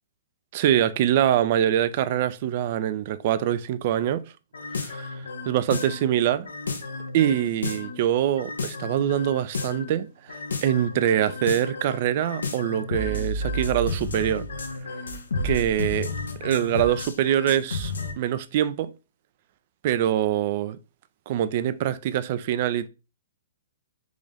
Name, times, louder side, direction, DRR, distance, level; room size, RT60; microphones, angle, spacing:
voice 1, 0.5-4.2 4.7-6.5 7.1-14.5 14.9-15.0 15.4-16.1 16.4-18.9 19.8-20.8 21.3-22.9, right 11 dB, 50° right, 0.3 m, -24 dB
sound 1, 4.5-6.1 6.4-8.0 8.4-9.9 10.3-18.1, left 2 dB, 85° left, 0.7 m, -32 dB
3.6 x 2.5 x 3.4 m
hypercardioid pair, 130°, 0 cm